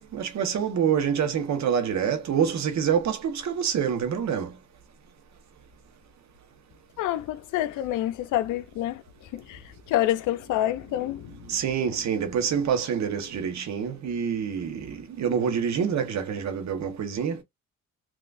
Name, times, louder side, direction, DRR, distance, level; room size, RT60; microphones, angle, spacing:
voice 1, 0.0-4.5 11.5-17.4, right 7 dB, 65° right, 1.2 m, -26 dB
voice 2, 7.0-11.4, left 13 dB, 85° left, 0.6 m, -28 dB
3.6 x 2.8 x 2.6 m
cardioid pair, 90°, 30 cm